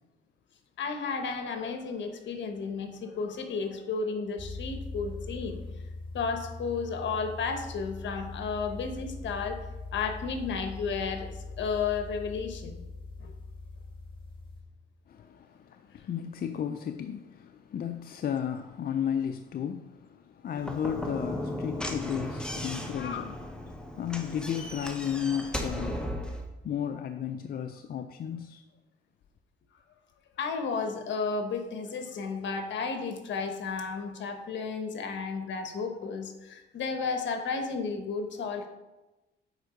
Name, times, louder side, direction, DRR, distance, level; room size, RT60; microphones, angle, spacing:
voice 1, 0.8-5.6 6.1-9.6 9.9-11.3 11.6-12.8 13.2-13.3 22.9-23.2 30.4-38.7, left 5 dB, 70° left, 1.2 m, -33 dB
sound 1, 4.4-14.6, left 3 dB, 25° left, 2.0 m, -41 dB
voice 2, 15.1-23.4 23.6-26.2 26.6-28.6, left 8 dB, 50° left, 0.5 m, -34 dB
Slam / Knock, 20.6-26.4, left 1 dB, 5° left, 1.0 m, -36 dB
8.0 x 4.6 x 5.1 m
cardioid pair, 90°, 20 cm